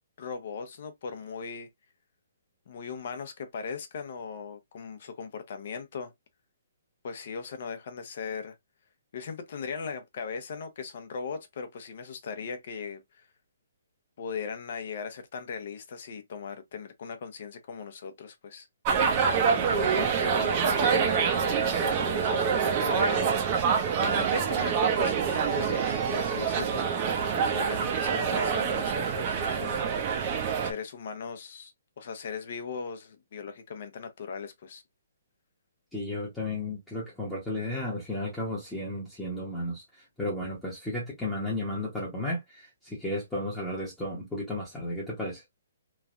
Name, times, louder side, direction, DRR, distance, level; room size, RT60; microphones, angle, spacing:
voice 1, 0.2-1.7 2.7-6.1 7.0-8.5 9.1-13.3 14.2-18.7 19.4-23.4 24.0-29.9 30.6-34.8, left 5 dB, 50° left, 0.7 m, -38 dB
sound 1, 18.8-30.7, right 6 dB, 30° right, 0.6 m, -26 dB
voice 2, 35.9-39.8 40.2-45.4, left 1 dB, 5° left, 0.9 m, -33 dB
3.2 x 2.2 x 2.5 m
hypercardioid pair, 160°, 0 cm